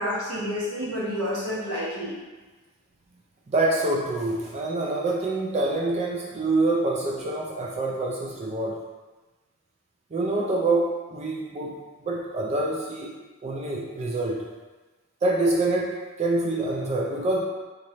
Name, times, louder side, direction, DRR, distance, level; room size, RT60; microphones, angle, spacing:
voice 1, 0.0-2.1, equal, 80° right, -7 dB, 1.2 m, -29 dB
voice 2, 3.5-8.8 10.1-13.1 13.4-14.5 15.2-17.4, right 2 dB, 30° right, -2 dB, 0.4 m, -26 dB
3.0 x 2.5 x 4.0 m, 1.2 s
head